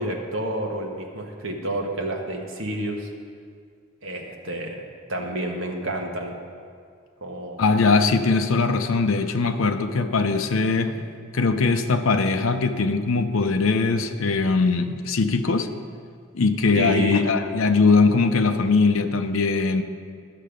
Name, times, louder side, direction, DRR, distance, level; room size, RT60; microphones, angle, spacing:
voice 1, 0.0-3.1 4.0-4.8 5.1-6.3 7.2-7.6 16.7-17.3, right 1 dB, 70° right, 1 dB, 1.2 m, -29 dB
voice 2, 7.6-10.9 11.3-15.7 16.3-19.8, left 4 dB, 75° left, 7 dB, 0.6 m, -21 dB
12.0 x 6.6 x 5.1 m, 2.1 s
head